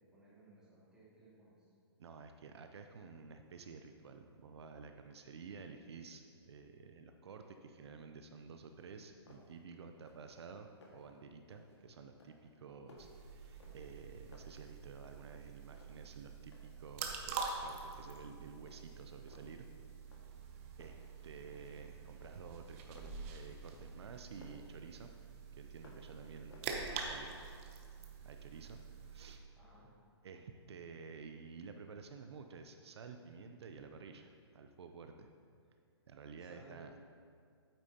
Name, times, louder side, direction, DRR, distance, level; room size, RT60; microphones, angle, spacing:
voice 1, 0.1-1.7 29.6-29.9 36.4-36.9, right 3 dB, 5° right, -9 dB, 2.1 m, -61 dB
voice 2, 2.0-19.7 20.8-25.1 25.5-27.4 28.2-28.8 29.1-29.4 30.2-35.3 36.1-37.0, right 5 dB, 70° right, 6 dB, 0.6 m, -52 dB
sound 1, 9.3-9.7 9.9-10.4 10.6-11.1 11.5-11.8 12.2-14.0 14.3-15.4 15.7-16.8 17.2-17.5 17.9-18.3 18.7-19.6 20.1-20.5 20.8-21.9 22.2-24.7 25.1-26.2 26.5-27.6, left 2 dB, 85° left, 1.8 m, -62 dB
sound 2, 13.0-29.4, right 5 dB, 30° right, 0.8 m, -47 dB
8.9 x 8.2 x 2.8 m, 2.3 s
hypercardioid pair, 155°, 14 cm